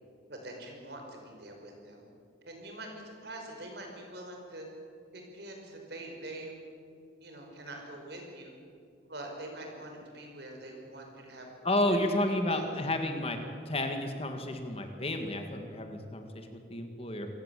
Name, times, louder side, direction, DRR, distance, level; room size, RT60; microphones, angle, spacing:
voice 1, 0.3-2.0 2.4-4.7 5.1-6.5 7.2-8.5 9.1-11.5 11.9-12.0 12.5-12.7, right 1 dB, 55° right, 2 dB, 5.5 m, -44 dB
voice 2, 11.6-13.4 13.7-17.3, left 1 dB, 30° left, 5 dB, 2.0 m, -31 dB
27.0 x 16.5 x 8.4 m, 2.4 s
head